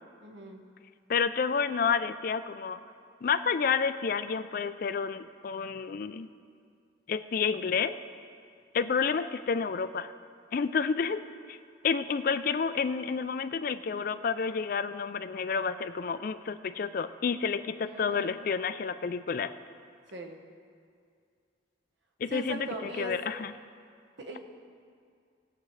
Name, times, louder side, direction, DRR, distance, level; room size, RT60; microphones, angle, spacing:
voice 1, 0.2-0.6 17.8-18.3 20.1-20.4 22.3-23.1 24.2-24.4, right 2 dB, 75° right, 2 dB, 1.2 m, -40 dB
voice 2, 1.1-2.8 3.2-6.3 7.1-8.0 8.7-10.1 10.5-11.6 11.8-19.5 22.2-23.5, left 5 dB, 50° left, 12 dB, 0.4 m, -30 dB
19.5 x 7.7 x 3.2 m, 2.3 s
head